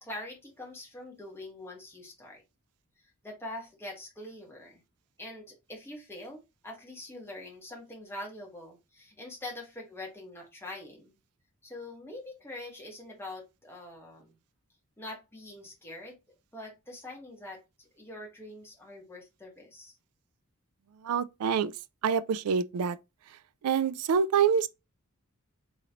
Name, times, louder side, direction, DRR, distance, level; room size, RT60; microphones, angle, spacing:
voice 1, 0.0-2.4 3.2-4.8 5.2-11.2 11.6-14.3 15.0-16.2 16.5-19.9, left 1 dB, 10° left, 1.2 m, -44 dB
voice 2, 21.0-21.7 22.0-23.0 23.6-24.7, right 6 dB, 85° right, 0.4 m, -26 dB
3.8 x 3.1 x 2.8 m
head